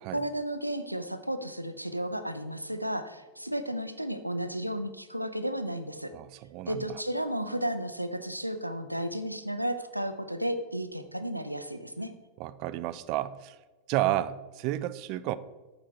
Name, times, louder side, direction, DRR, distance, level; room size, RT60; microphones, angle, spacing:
voice 1, 0.1-6.1 6.7-12.1, right 1 dB, 90° right, 10 dB, 0.7 m, -33 dB
voice 2, 6.1-7.0 12.4-13.6 13.9-15.4, right 14 dB, 45° right, 17 dB, 0.4 m, -31 dB
8.6 x 8.3 x 4.6 m, 1.2 s
figure-of-eight pair, 90°, 0 cm